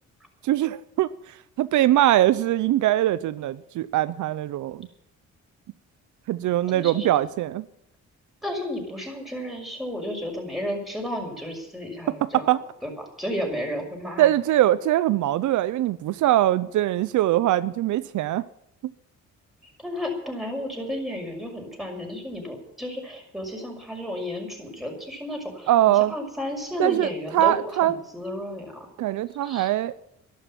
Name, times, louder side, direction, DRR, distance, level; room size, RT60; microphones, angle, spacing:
voice 1, 0.4-4.9 6.3-7.7 12.3-12.6 14.2-18.4 25.7-26.1 26.8-28.0 29.0-29.9, right 13 dB, 75° right, 0.7 m, -22 dB
voice 2, 6.7-7.1 8.4-12.5 12.8-12.9 13.2-14.3 19.6-25.7 26.1-28.9 29.3-29.7, left 1 dB, ahead, 6.0 m, -32 dB
12.5 x 12.0 x 8.9 m
cardioid pair, 90°, 30 cm